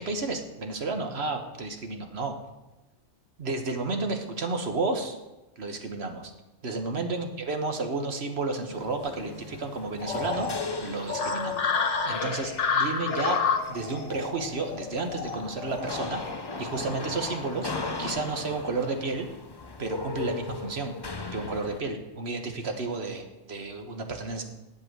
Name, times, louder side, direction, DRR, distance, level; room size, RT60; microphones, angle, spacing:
voice 1, 0.0-2.3 3.4-5.2 5.6-6.3 6.6-10.5 10.8-11.6 12.0-13.4 13.7-16.2 16.6-17.7 18.0-19.3 19.8-21.0 21.3-24.4, right 3 dB, 55° right, 5 dB, 1.5 m, -31 dB
sound 1, 8.7-21.8, left 3 dB, 25° left, 0.7 m, -39 dB
sound 2, 10.0-18.1, left 5 dB, 65° left, 1.4 m, -30 dB
8.4 x 8.3 x 7.6 m, 1.0 s
omnidirectional pair, 1.3 m